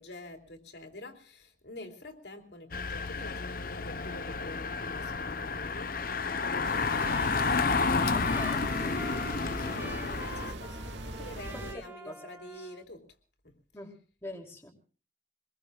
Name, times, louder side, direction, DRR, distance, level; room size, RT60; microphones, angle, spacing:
voice 1, 0.0-6.0 6.3-7.1 8.8-9.2 9.5-10.8 11.0-13.0 13.4-13.5, left 1 dB, 65° left, 3 dB, 3.2 m, -47 dB
Engine, 2.7-10.5, left 4 dB, 50° left, 0.9 m, -31 dB
Trumpet, 6.1-12.8, right 1 dB, 10° right, 1.6 m, -47 dB
sound 1, 6.6-11.7, right 1 dB, 80° right, 2.3 m, -41 dB
voice 2, 8.1-8.7 11.5-12.3 12.5-12.7 13.7-13.9 14.2-14.7, left 1 dB, 15° left, 1 dB, 2.9 m, -44 dB
25.5 x 21.0 x 2.4 m, 0.40 s
head